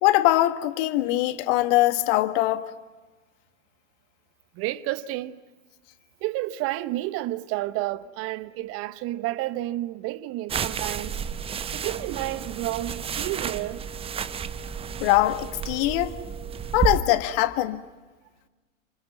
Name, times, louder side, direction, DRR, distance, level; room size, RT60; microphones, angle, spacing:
voice 1, 0.0-2.7 15.0-16.2 16.7-17.8, left 15 dB, 45° left, 1.6 m, -22 dB
voice 2, 4.5-5.4 6.2-11.2 11.7-13.8, right 16 dB, 35° right, 1.1 m, -30 dB
sound 1, 10.5-17.0, right 7 dB, 15° right, 0.8 m, -31 dB
29.0 x 26.5 x 5.9 m
figure-of-eight pair, 95°, 40 cm